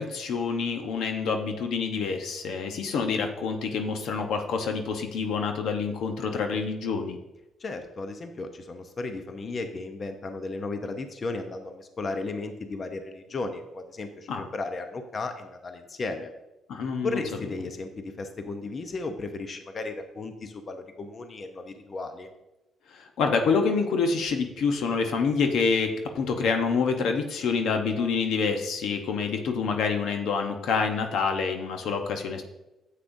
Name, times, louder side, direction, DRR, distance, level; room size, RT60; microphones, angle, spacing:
voice 1, 0.0-7.2 14.3-14.5 16.7-17.2 22.9-32.4, left 5 dB, 75° left, 5 dB, 0.8 m, -27 dB
voice 2, 7.6-16.3 17.0-22.3, left 3 dB, 40° left, 7 dB, 0.8 m, -35 dB
9.9 x 7.5 x 2.6 m, 0.97 s
cardioid pair, 90°, 0 cm